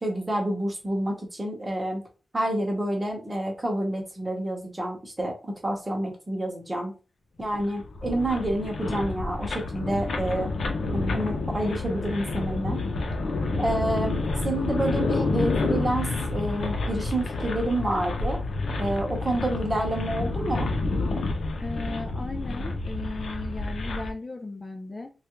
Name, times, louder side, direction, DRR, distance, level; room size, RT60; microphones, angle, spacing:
voice 1, 0.0-2.0 2.3-6.9 7.4-10.5 10.9-12.8 13.6-18.4 18.8-20.7, right 1 dB, 20° right, 1 dB, 0.9 m, -28 dB
sound 1, 7.5-24.1, left 3 dB, 75° left, 0.6 m, -29 dB
voice 2, 21.6-25.1, left 3 dB, 25° left, 4 dB, 0.3 m, -36 dB
3.3 x 2.3 x 3.0 m, 0.34 s
wide cardioid pair, 155°, 0 cm